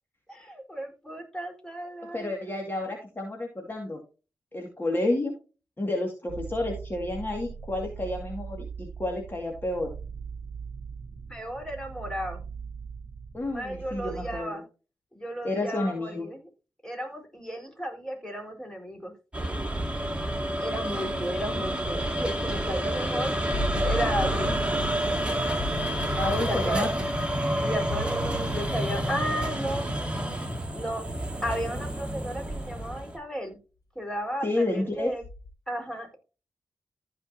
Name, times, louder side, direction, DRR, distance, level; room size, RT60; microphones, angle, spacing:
voice 1, 0.3-2.3 11.3-12.4 13.4-14.6 15.1-16.5 16.8-19.1 20.6-23.3 23.8-24.7 26.3-26.9 27.6-29.9 30.7-31.0 31.4-33.6 33.9-35.2 35.7-36.2, equal, 10° left, 1 dB, 4.3 m, -34 dB
voice 2, 2.1-4.0 4.5-5.3 5.8-9.9 13.3-14.6 15.4-16.3 26.2-26.9 34.4-35.1, left 2 dB, 30° left, 1 dB, 2.2 m, -30 dB
sound 1, 6.3-14.4, right 6 dB, 60° right, 0.9 m, -40 dB
sound 2, 19.3-33.2, right 1 dB, 15° right, 2.3 m, -29 dB
sound 3, 23.5-30.3 32.2-32.3 35.2-35.5, left 1 dB, 65° left, 1.6 m, -36 dB
14.5 x 5.2 x 2.8 m, 0.33 s
cardioid pair, 65°, 7 cm